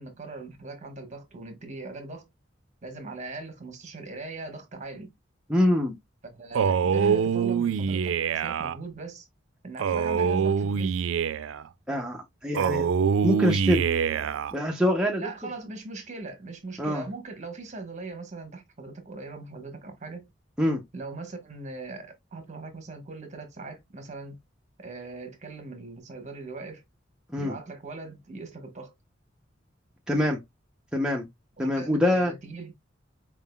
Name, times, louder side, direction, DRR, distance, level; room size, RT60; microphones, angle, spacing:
voice 1, 0.0-2.3 2.8-5.1 6.3-9.3 9.6-11.0 15.2-20.3 20.9-24.4 24.8-26.8 27.4-28.9 31.6-32.7, right 3 dB, 40° right, 1.2 m, -40 dB
voice 2, 5.5-6.0 11.9-12.9 13.2-13.8 14.5-15.3 16.8-17.1 20.6-20.8 27.3-27.5 30.1-30.4 30.9-31.3 31.6-32.3, left 1 dB, 5° right, 0.6 m, -24 dB
Male speech man speaking, 6.5-8.8 9.8-11.6 12.5-14.5, right 6 dB, 80° right, 0.3 m, -25 dB
4.5 x 3.7 x 2.2 m
head